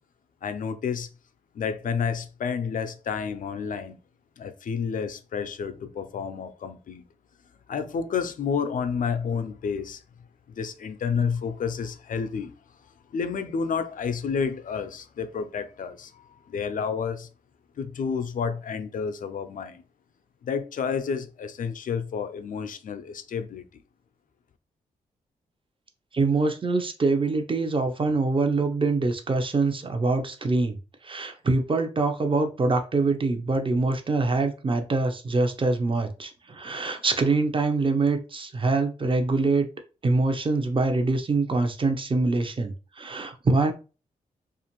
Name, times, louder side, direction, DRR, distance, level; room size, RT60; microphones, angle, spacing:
voice 1, 0.4-1.1 1.5-4.0 4.4-7.0 7.7-10.0 10.5-12.5 13.1-17.3 17.8-19.8 20.4-23.6, left 6 dB, 60° left, 0.4 m, -30 dB
voice 2, 26.1-30.8 31.0-39.7 40.0-43.7, right 3 dB, 35° right, 0.7 m, -24 dB
2.5 x 2.4 x 2.9 m
supercardioid pair, 50°, 16 cm